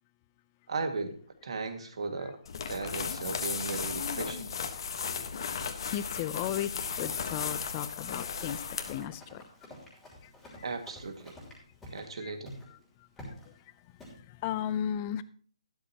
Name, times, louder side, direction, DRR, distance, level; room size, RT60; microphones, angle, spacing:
voice 1, 0.7-2.4 2.7-4.5 10.6-11.4 11.9-12.5, right 4 dB, 60° right, 6 dB, 2.1 m, -36 dB
sound 1, 2.5-9.1, left 6 dB, 45° left, 1.3 m, -35 dB
voice 2, 5.9-9.4 10.2-10.3 12.2-12.3 12.7-13.9 14.1-15.2, left 10 dB, 20° left, 15 dB, 0.5 m, -36 dB
Run, 8.2-12.1 12.4-12.7 13.2-13.5 14.0-14.2, left 1 dB, 5° left, 3.1 m, -49 dB
13.0 x 12.0 x 2.9 m, 0.43 s
hypercardioid pair, 170°, 3 cm